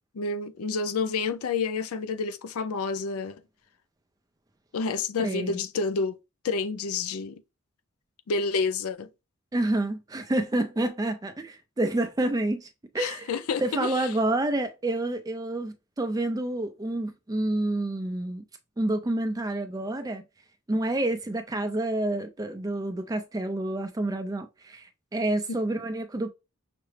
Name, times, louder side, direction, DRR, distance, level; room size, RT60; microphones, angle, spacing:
voice 1, 0.1-3.4 4.7-6.2 6.4-7.4 8.3-9.1 13.0-14.1 25.5-25.6, left 4 dB, 85° left, 0.5 m, -29 dB
voice 2, 5.2-5.6 9.5-12.7 12.9-13.3 13.6-18.4 18.8-20.2 20.7-24.9 25.1-26.3, right 1 dB, 15° right, 0.4 m, -28 dB
5.8 x 2.0 x 3.2 m
head